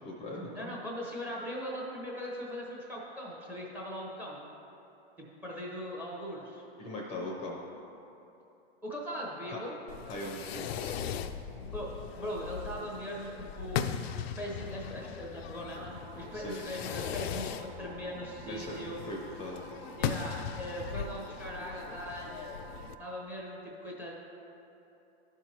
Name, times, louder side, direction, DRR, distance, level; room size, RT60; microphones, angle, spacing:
voice 1, 0.0-0.7 6.8-7.6 9.5-9.6 10.1-11.0 16.3-16.6 18.4-18.8 19.1-19.6, left 1 dB, 20° left, -2 dB, 0.6 m, -40 dB
voice 2, 0.5-4.5 5.2-6.7 8.8-9.7 11.7-11.9 12.2-13.8 14.4-19.0 20.0-22.5 23.0-24.1, equal, 5° right, -3 dB, 0.8 m, -40 dB
Fireworks, 9.9-22.9, left 8 dB, 70° left, 0.5 m, -39 dB
sound 1, 15.9-23.2, right 8 dB, 55° right, 0.5 m, -53 dB
12.5 x 4.6 x 2.9 m, 2.9 s
hypercardioid pair, 150°, 32 cm